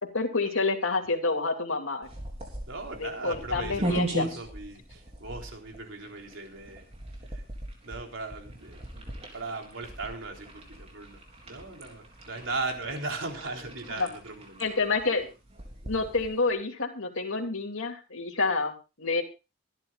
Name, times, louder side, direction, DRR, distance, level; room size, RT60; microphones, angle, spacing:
voice 1, 0.0-2.1 3.0-4.3 14.0-14.1 14.6-15.3 15.8-19.2, left 3 dB, 80° left, 2 dB, 2.7 m, -28 dB
sound 1, 2.0-16.5, right 1 dB, 30° right, 3.9 m, -39 dB
voice 2, 2.6-6.9 7.3-7.4 7.8-14.7, right 3 dB, 70° right, 2 dB, 3.7 m, -38 dB
24.0 x 10.5 x 2.5 m, 0.29 s
head